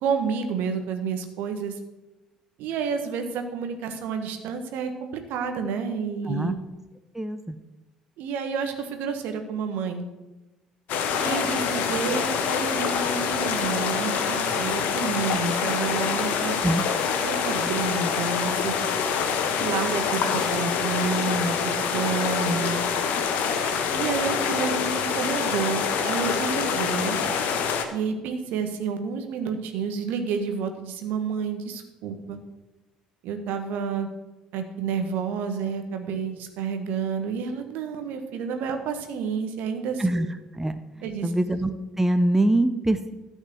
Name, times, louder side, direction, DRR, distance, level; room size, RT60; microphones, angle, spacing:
voice 1, 0.0-1.8 2.6-6.5 8.2-10.1 11.2-16.6 17.2-18.9 19.6-22.8 23.9-27.2 27.9-32.4 33.2-34.1 34.5-40.3 41.0-41.3, right 5 dB, 60° right, 6 dB, 1.5 m, -30 dB
voice 2, 7.1-7.6 16.6-16.8 40.0-40.3 40.5-40.8 41.2-43.1, right 1 dB, 10° right, 10 dB, 0.8 m, -23 dB
sound 1, 10.9-27.9, left 6 dB, 55° left, 1.4 m, -26 dB
13.0 x 5.4 x 7.9 m, 1.1 s
figure-of-eight pair, 55°, 3 cm